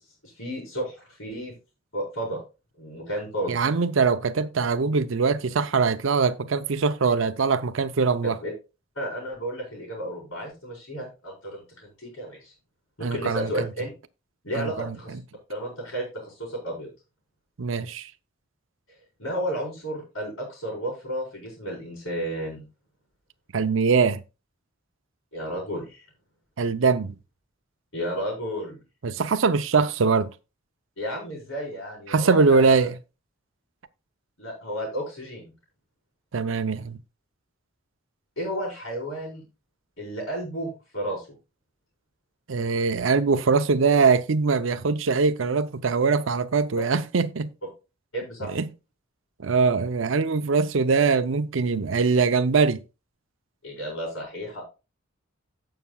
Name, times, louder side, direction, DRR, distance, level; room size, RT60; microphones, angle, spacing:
voice 1, 0.2-1.5 1.9-2.4 2.8-3.6 8.2-8.5 8.9-12.5 13.0-13.9 14.4-15.2 15.5-16.9 19.2-22.6 25.3-26.1 27.9-28.8 31.0-32.9 34.4-35.5 38.4-39.4 40.0-41.3 48.1-48.5 53.6-54.6, equal, 80° left, 4.3 m, -32 dB
voice 2, 3.5-8.4 13.0-13.7 14.5-15.0 17.6-18.1 23.5-24.2 26.6-27.1 29.0-30.3 32.1-33.0 36.3-37.0 42.5-47.5 48.5-48.7 49.4-52.8, right 4 dB, 70° right, 0.6 m, -22 dB
16.5 x 5.8 x 2.3 m
head